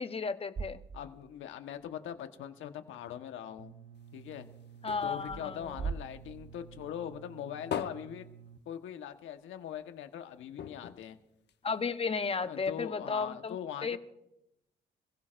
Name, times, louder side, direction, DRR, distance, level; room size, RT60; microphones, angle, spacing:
voice 1, 0.0-0.8 4.8-5.9 11.6-13.6 13.8-14.0, left 5 dB, 30° left, 10 dB, 0.9 m, -34 dB
sound 1, 0.6-1.5 1.9-2.0 5.2-7.2, right 5 dB, 30° right, 0.6 m, -41 dB
voice 2, 0.9-3.7 4.1-4.5 5.0-8.2 8.6-11.2 12.4-14.0, left 9 dB, 80° left, 7 dB, 1.3 m, -41 dB
sound 2, 3.6-8.6, right 8 dB, 75° right, 0.8 m, -53 dB
sound 3, 3.9-6.6 7.0-9.2 9.6-9.7 9.9-10.1 10.5-12.1 12.7-12.8, left 8 dB, 60° left, 1.0 m, -43 dB
27.0 x 16.0 x 2.6 m, 0.83 s
cardioid pair, 90°, 20 cm